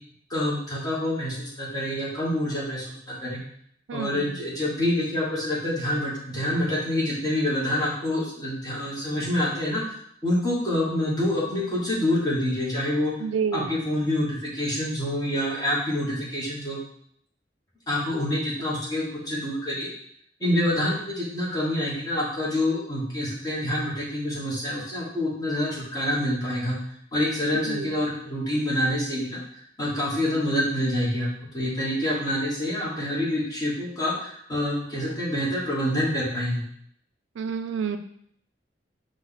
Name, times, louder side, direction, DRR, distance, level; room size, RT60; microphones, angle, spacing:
voice 1, 0.3-3.4 3.9-13.1 13.5-16.8 17.9-19.9 20.4-26.7 27.1-29.4 29.8-36.7, left 1 dB, 20° left, -6 dB, 1.3 m, -27 dB
voice 2, 3.9-4.3 13.2-13.7 27.7-27.9 37.4-38.0, right 6 dB, 80° right, 8 dB, 0.4 m, -29 dB
5.1 x 2.5 x 4.0 m, 0.69 s
head